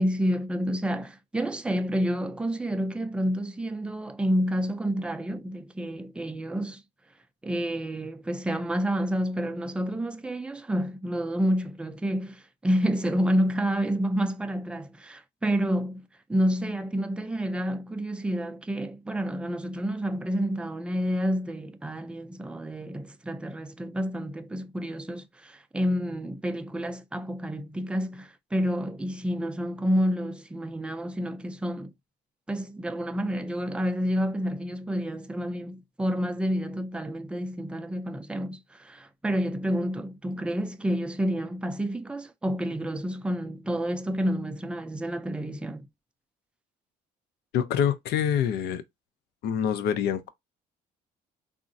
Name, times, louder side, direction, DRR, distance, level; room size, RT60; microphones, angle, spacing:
voice 1, 0.0-6.8 7.4-31.9 32.5-45.9, equal, 5° right, 0.4 m, -29 dB
voice 2, 47.5-48.8 49.4-50.3, left 8 dB, 75° left, 0.5 m, -26 dB
3.6 x 2.0 x 2.6 m
cardioid pair, 110°, 17 cm